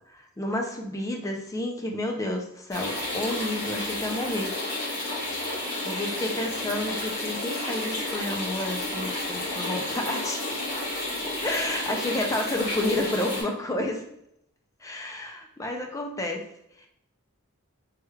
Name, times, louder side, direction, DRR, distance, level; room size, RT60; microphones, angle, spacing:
voice 1, 0.1-4.5 5.5-10.4 11.4-14.0 14.8-16.5 16.8-16.9, left 1 dB, 15° left, 2 dB, 0.4 m, -30 dB
sound 1, 2.7-13.4, left 1 dB, 40° left, 1.5 m, -31 dB
3.3 x 3.1 x 2.3 m, 0.75 s
head